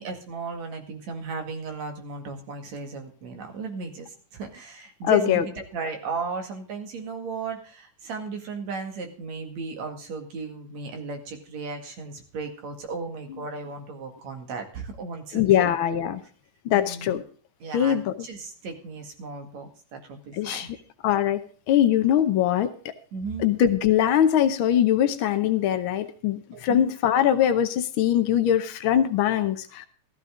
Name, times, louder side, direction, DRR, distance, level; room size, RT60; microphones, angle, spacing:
voice 1, 0.0-15.8 16.7-17.2 17.6-20.7 23.1-23.5 26.5-26.9, right 4 dB, 65° right, 5 dB, 3.2 m, -35 dB
voice 2, 5.0-5.4 15.3-16.2 16.6-17.2 17.7-18.1 20.4-20.7 21.0-21.4 21.7-22.9 23.4-29.8, left 10 dB, 80° left, 8 dB, 1.1 m, -22 dB
14.5 x 13.5 x 3.7 m, 0.41 s
omnidirectional pair, 3.5 m